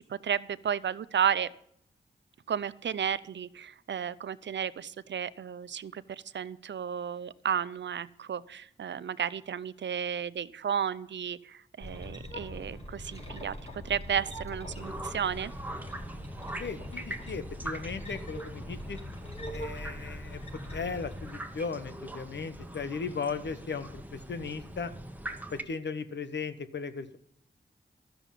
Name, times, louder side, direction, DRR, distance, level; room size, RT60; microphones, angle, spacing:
voice 1, 0.0-1.5 2.5-13.5 13.8-15.5, right 8 dB, 75° right, 17 dB, 0.6 m, -33 dB
sound 1, 11.8-21.3, equal, 35° left, 4.3 m, -42 dB
sound 2, 14.8-25.6, right 1 dB, 10° right, 1.3 m, -42 dB
voice 2, 16.6-19.0 19.5-24.9 25.5-27.2, left 5 dB, 75° left, 12 dB, 1.0 m, -37 dB
13.0 x 7.0 x 7.4 m, 0.69 s
cardioid pair, 55°, 19 cm